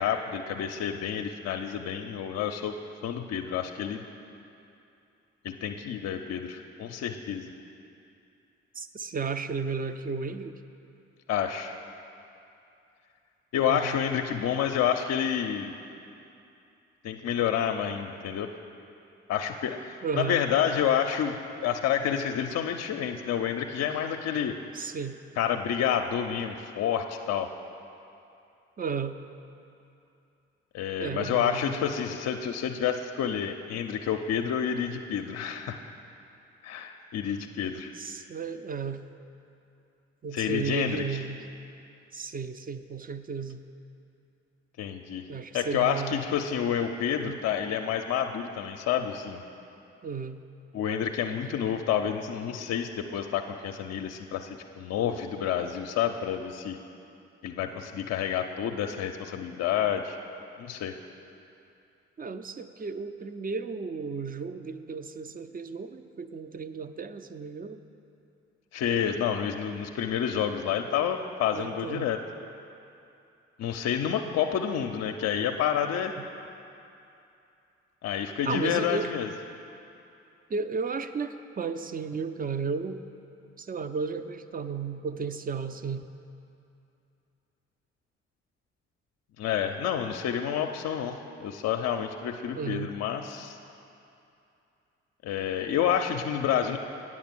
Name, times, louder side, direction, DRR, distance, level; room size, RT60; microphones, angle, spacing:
voice 1, 0.0-2.8 3.0-4.0 5.4-7.5 11.3-11.7 13.5-15.8 17.0-18.5 19.3-24.5 25.4-27.5 30.7-35.8 36.6-37.9 40.3-41.0 44.8-45.2 45.5-49.4 50.7-54.5 54.8-56.8 57.4-60.2 60.6-60.9 68.7-72.2 73.6-76.2 78.0-79.3 89.4-93.6 95.2-96.8, left 8 dB, 55° left, 5 dB, 0.6 m, -29 dB
voice 2, 8.8-10.5 13.7-14.0 20.0-20.4 24.7-25.2 28.8-29.1 31.0-31.8 38.0-39.0 40.2-41.4 42.1-43.6 45.3-46.3 47.2-47.4 50.0-50.4 62.2-67.8 71.5-72.1 78.4-79.1 80.5-83.0 83.6-86.1 92.6-92.9, right 5 dB, 25° right, 10 dB, 0.5 m, -34 dB
8.6 x 7.4 x 6.1 m, 2.7 s
hypercardioid pair, 40°, 32 cm